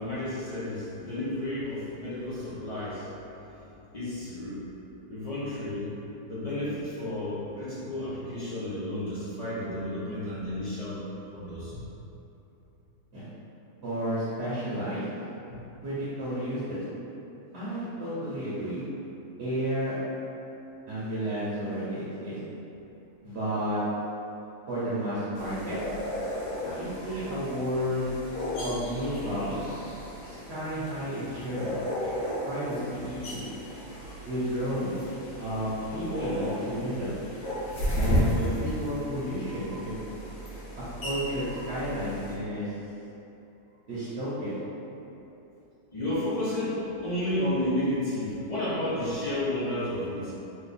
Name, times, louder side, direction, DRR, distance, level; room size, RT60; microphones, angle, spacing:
voice 1, 0.0-4.7 5.1-5.9 6.3-11.1 11.3-11.8 15.5-15.6 27.0-27.1 32.0-32.8 45.9-50.3, left 1 dB, 50° left, -11 dB, 0.4 m, -32 dB
voice 2, 13.8-15.0 15.8-16.8 17.5-18.8 19.4-20.0 20.9-22.4 23.2-23.8 24.7-25.8 26.6-28.1 28.6-29.7 30.2-31.8 32.5-33.4 34.2-35.0 35.4-37.2 37.9-39.9 41.0-42.7 43.9-44.6, equal, 50° right, -11 dB, 1.0 m, -32 dB
sound 1, 25.3-42.3, equal, 70° left, 1.3 m, -34 dB
3.0 x 2.4 x 4.0 m, 2.9 s
omnidirectional pair, 1.6 m